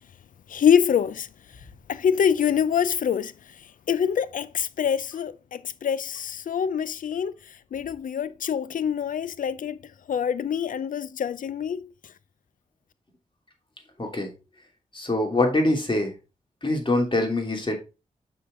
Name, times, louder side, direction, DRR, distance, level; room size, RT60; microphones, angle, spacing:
voice 1, 0.5-1.3 1.9-3.3 3.9-7.3 7.7-9.8 10.1-11.8, left 8 dB, 85° left, 0.5 m, -25 dB
voice 2, 14.0-14.3 14.9-16.1 16.6-17.8, left 2 dB, 35° left, 2.9 m, -24 dB
6.9 x 5.7 x 3.7 m
cardioid pair, 55°, 14 cm